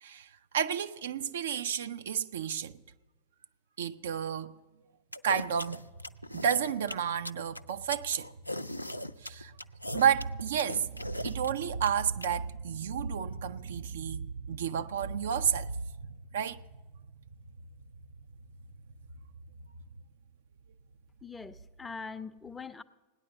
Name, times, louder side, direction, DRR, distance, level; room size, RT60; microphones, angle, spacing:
voice 1, 0.0-2.8 3.8-4.6 5.2-5.8 6.3-8.3 9.2-9.5 9.9-16.6, right 8 dB, 60° right, 0.5 m, -31 dB
sound 1, 5.1-12.3, left 1 dB, 90° left, 0.4 m, -39 dB
sound 2, 5.3-20.0, right 1 dB, 80° right, 1.5 m, -53 dB
voice 2, 21.2-22.8, left 5 dB, 10° left, 0.5 m, -42 dB
17.5 x 10.0 x 7.0 m
figure-of-eight pair, 90°, 0 cm